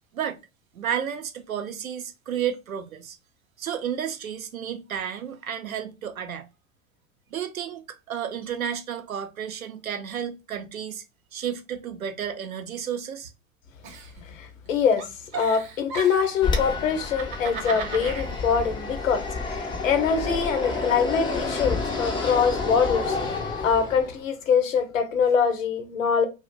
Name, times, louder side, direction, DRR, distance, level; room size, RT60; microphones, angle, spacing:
voice 1, 0.7-3.2 3.6-6.5 7.3-11.0 11.3-13.3, right 8 dB, 85° right, 0.5 m, -32 dB
Giggle, 13.8-14.7 15.0-16.4 17.0-18.3, right 6 dB, 40° right, 0.8 m, -36 dB
voice 2, 14.2-26.3, left 6 dB, 70° left, 0.8 m, -24 dB
Fixed-wing aircraft airplane, 16.4-24.2, left 3 dB, 15° left, 0.3 m, -29 dB
2.5 x 2.0 x 3.8 m
figure-of-eight pair, 80°, 41 cm